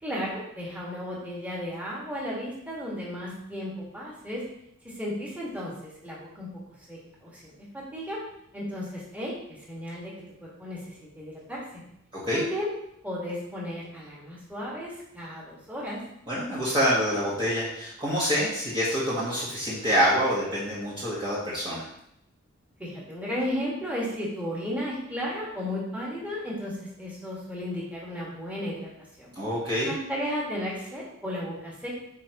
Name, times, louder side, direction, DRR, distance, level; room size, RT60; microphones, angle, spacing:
voice 1, 0.0-4.4 4.9-6.5 6.9-8.2 8.5-10.1 10.4-11.8 12.3-12.7 13.0-16.0 22.8-29.3 29.9-32.0, equal, 5° right, -6 dB, 1.9 m, -34 dB
voice 2, 16.3-21.8 29.3-29.9, equal, 25° right, -9 dB, 1.5 m, -26 dB
8.3 x 4.7 x 3.1 m, 0.76 s
head